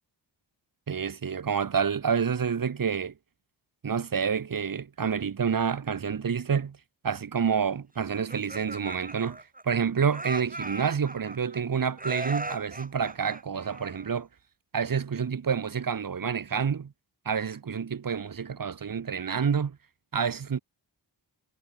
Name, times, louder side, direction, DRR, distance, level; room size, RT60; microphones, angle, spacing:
voice 1, 0.9-3.1 3.8-6.8 7.0-14.3 14.7-16.9 17.2-19.8 20.1-20.6, right 6 dB, 45° right, 1.6 m, -28 dB
Laughter, 8.1-9.8 10.1-11.6 12.0-14.2, right 2 dB, 20° right, 6.6 m, -38 dB
wide cardioid pair, 145°, 46 cm